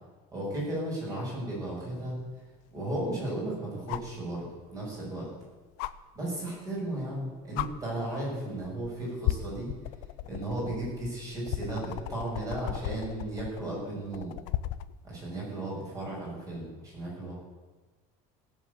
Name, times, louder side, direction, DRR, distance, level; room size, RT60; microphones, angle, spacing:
voice 1, 0.3-2.2 2.7-4.4 4.7-5.3 6.1-9.7 10.2-14.4 15.0-17.3, right 1 dB, 20° right, -4 dB, 6.3 m, -35 dB
sound 1, 1.7-1.8 3.9-4.2 5.8-5.9 7.1-7.2 7.5-7.7 8.6-8.9 9.2-14.9 16.6-16.7, left 16 dB, 65° left, 0.6 m, -35 dB
17.0 x 7.7 x 8.2 m, 1.3 s
cardioid pair, 170°, 16 cm